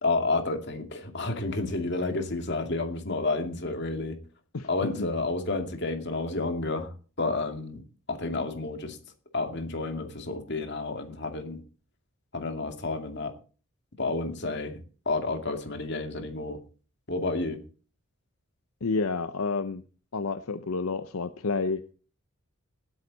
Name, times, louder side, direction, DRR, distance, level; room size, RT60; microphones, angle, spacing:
voice 1, 0.0-4.2 4.6-7.8 8.1-9.0 9.3-11.6 12.3-13.3 14.0-14.8 15.1-16.6 17.1-17.6, left 3 dB, 50° left, 6 dB, 2.3 m, -30 dB
voice 2, 4.5-5.1 18.8-19.8 20.1-21.9, left 4 dB, 80° left, 11 dB, 0.7 m, -30 dB
18.5 x 9.0 x 4.1 m, 0.37 s
head